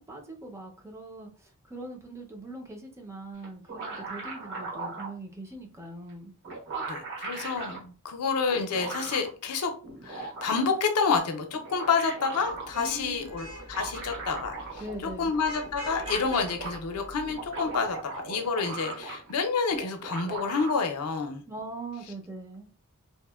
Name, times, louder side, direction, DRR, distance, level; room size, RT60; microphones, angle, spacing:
voice 1, 0.1-1.3 1.7-6.3 12.8-13.3 14.8-15.4 21.5-22.7, right 2 dB, 15° right, 1 dB, 0.5 m, -41 dB
sound 1, 3.4-5.1 6.1-6.2 6.4-7.8 8.5-9.3 9.8-10.9 11.5-12.7 13.6-15.0 15.3-15.4 15.6-16.8 17.2-19.4 19.7-20.7, right 3 dB, 55° right, 1.1 m, -38 dB
voice 2, 6.9-9.7 10.0-18.0 18.2-21.4, left 5 dB, 85° left, 5 dB, 0.5 m, -29 dB
Vehicle horn car horn honking / Traffic noise roadway noise, 12.5-17.8, equal, 85° right, 1.0 m, -44 dB
2.8 x 2.1 x 2.2 m, 0.37 s
head